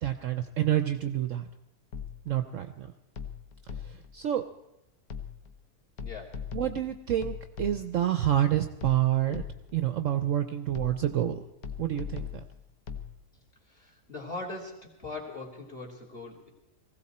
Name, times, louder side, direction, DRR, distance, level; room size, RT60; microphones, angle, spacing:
voice 1, 0.0-1.5 2.3-2.9 3.8-4.5 6.5-9.4 9.7-11.4 11.8-12.4, right 12 dB, 60° right, 9 dB, 0.9 m, -28 dB
sound 1, 1.9-2.4 3.2-4.2 5.1-5.6 6.0-8.1 8.8-9.9 10.7-11.3 11.6-13.1, left 7 dB, 65° left, 1.6 m, -40 dB
voice 2, 6.0-6.4 13.7-16.5, left 3 dB, 35° left, 1 dB, 3.1 m, -41 dB
19.5 x 16.0 x 4.3 m, 0.91 s
omnidirectional pair, 1.7 m